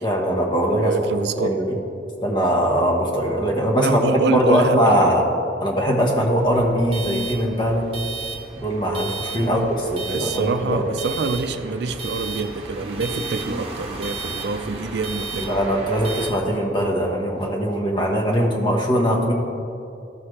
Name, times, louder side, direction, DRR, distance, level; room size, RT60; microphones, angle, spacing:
voice 1, 0.0-1.8 2.2-5.3 5.6-7.9 8.6-10.9 15.4-19.3, equal, 25° left, 0 dB, 1.1 m, -21 dB
voice 2, 0.8-1.6 3.8-5.2 9.4-9.7 10.1-15.6, right 4 dB, 65° right, 10 dB, 0.4 m, -26 dB
sound 1, 6.4-16.3, right 3 dB, 35° right, 1.0 m, -33 dB
14.0 x 5.7 x 3.3 m, 2.7 s
head